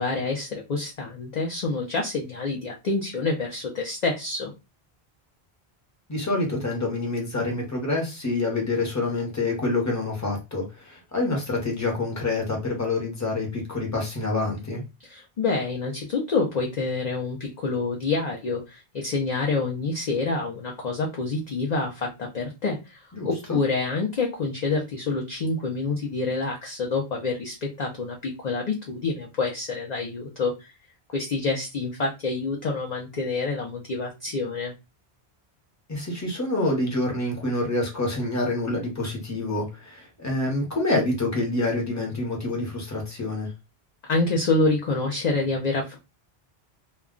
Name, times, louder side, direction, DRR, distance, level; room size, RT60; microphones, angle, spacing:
voice 1, 0.0-4.5 15.1-30.7 31.1-34.7 44.1-46.0, left 3 dB, 50° left, 0 dB, 0.6 m, -27 dB
voice 2, 6.1-14.8 23.1-23.6 35.9-43.5, left 2 dB, 15° left, 0 dB, 0.9 m, -27 dB
2.2 x 2.2 x 3.6 m, 0.26 s
omnidirectional pair, 1.1 m